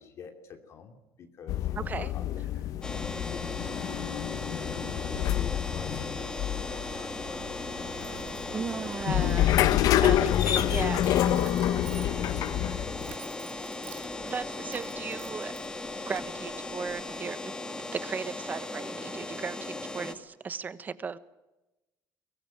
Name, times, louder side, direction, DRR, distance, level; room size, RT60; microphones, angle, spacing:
voice 1, 0.0-2.4 2.9-4.3 4.7-8.8 11.7-13.3, left 6 dB, 45° left, 4 dB, 2.8 m, -48 dB
sound 1, 1.5-13.1, left 12 dB, 65° left, 1.0 m, -28 dB
voice 2, 1.8-2.1 8.5-11.6 14.2-15.5 15.9-17.5 17.9-21.2, right 5 dB, 25° right, 14 dB, 1.2 m, -36 dB
sound 2, 2.8-20.1, left 2 dB, 10° left, 2.1 m, -37 dB
Keys jangling, 4.3-17.2, right 11 dB, 85° right, 3.6 m, -52 dB
23.0 x 19.5 x 9.0 m, 1.0 s
cardioid pair, 150°, 7 cm